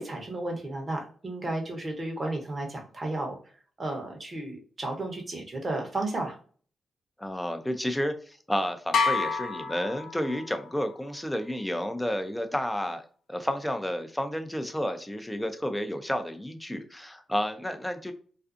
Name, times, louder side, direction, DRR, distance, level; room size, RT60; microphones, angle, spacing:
voice 1, 0.0-3.4 3.8-6.3, right 2 dB, 40° right, 1 dB, 0.9 m, -33 dB
voice 2, 7.2-18.1, equal, 10° left, 7 dB, 0.5 m, -31 dB
sound 1, 8.9-10.7, left 5 dB, 75° left, 0.3 m, -28 dB
2.5 x 2.3 x 2.4 m, 0.43 s
supercardioid pair, 45°, 0 cm